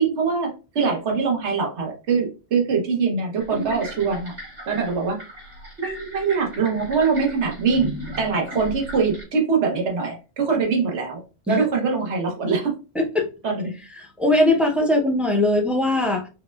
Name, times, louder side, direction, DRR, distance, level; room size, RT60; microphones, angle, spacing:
voice 1, 0.0-4.3 4.7-5.2 5.8-11.2 11.5-12.7 13.4-13.8, right 5 dB, 85° right, 1 dB, 1.2 m, -23 dB
sound 1, 3.4-9.2, right 1 dB, 55° right, 2.4 m, -37 dB
voice 2, 12.9-13.3 14.0-16.3, left 1 dB, ahead, 1 dB, 0.3 m, -20 dB
5.3 x 2.2 x 2.2 m, 0.32 s
omnidirectional pair, 1.1 m